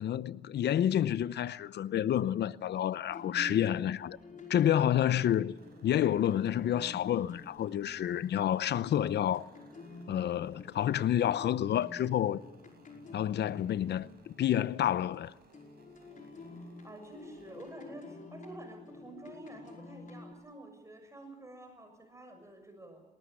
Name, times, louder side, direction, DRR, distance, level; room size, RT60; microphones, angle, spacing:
voice 1, 0.0-4.2 4.5-5.5 5.8-9.5 10.1-12.4 13.1-15.3, left 10 dB, 70° left, 0.8 m, -29 dB
sound 1, 3.1-15.2 15.5-20.3, left 3 dB, 45° left, 5.3 m, -50 dB
voice 2, 3.3-3.8 4.6-4.7 16.0-16.3 16.8-23.0, right 2 dB, 15° right, 7.0 m, -49 dB
sound 2, 5.5-17.7, right 4 dB, 60° right, 5.2 m, -62 dB
19.5 x 19.5 x 9.8 m
cardioid pair, 70°, 18 cm